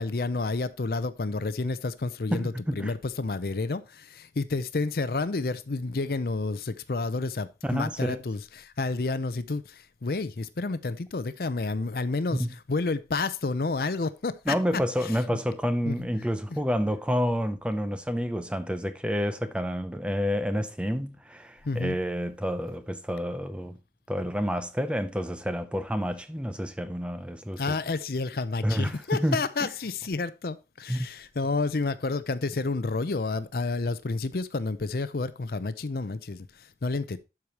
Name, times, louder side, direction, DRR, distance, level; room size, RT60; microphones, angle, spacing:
voice 1, 0.0-14.6 15.0-15.4 15.9-16.1 16.5-16.6 21.6-22.0 27.6-37.2, left 3 dB, 60° left, 0.6 m, -30 dB
voice 2, 2.3-2.9 7.6-8.2 12.4-12.5 14.5-23.8 24.1-27.6 28.6-29.4 30.9-31.1, equal, 5° right, 0.6 m, -29 dB
12.0 x 4.8 x 2.9 m
head